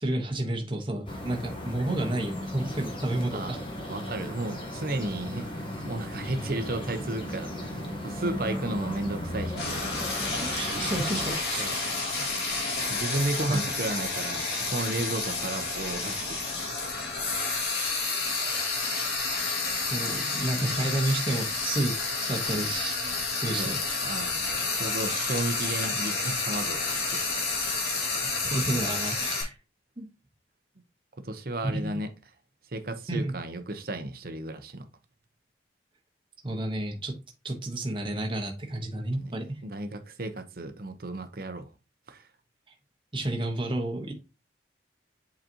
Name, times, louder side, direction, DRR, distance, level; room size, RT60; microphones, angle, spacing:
voice 1, 0.0-3.6 10.4-12.0 13.5-13.7 19.9-21.9 22.2-23.0 23.4-23.8 28.4-29.6 30.0-30.1 31.8-31.9 33.1-33.3 36.4-37.1 37.4-39.6 43.1-44.1, right 1 dB, 30° right, 1.1 m, -30 dB
sound 1, 1.1-11.3, left 1 dB, 30° left, 1.2 m, -36 dB
voice 2, 3.3-3.6 3.9-9.9 11.6-12.3 12.9-16.6 23.6-27.3 31.2-32.1 32.7-34.9 39.1-39.3 39.6-41.7 42.1-42.3, right 2 dB, 50° right, 0.8 m, -34 dB
Frying (food), 9.6-29.4, left 3 dB, 65° left, 2.1 m, -30 dB
7.9 x 4.1 x 2.9 m
head